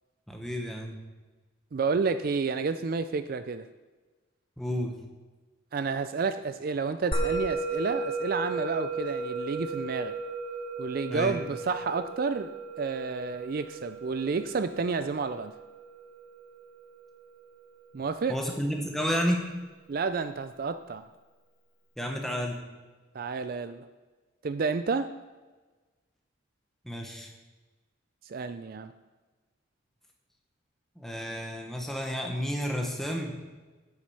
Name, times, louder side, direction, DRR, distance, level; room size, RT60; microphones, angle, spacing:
voice 1, 0.3-1.0 4.6-4.9 11.1-11.4 18.3-19.4 22.0-22.6 26.8-27.3 31.0-33.3, equal, ahead, 1 dB, 1.1 m, -31 dB
voice 2, 1.7-3.7 5.7-10.1 10.8-15.5 17.9-18.4 19.9-21.1 23.1-23.8 24.4-25.1 28.2-28.9, right 4 dB, 45° right, 10 dB, 0.3 m, -30 dB
Musical instrument, 7.1-17.7, right 2 dB, 25° left, 1.1 m, -35 dB
8.6 x 8.0 x 5.6 m, 1.3 s
head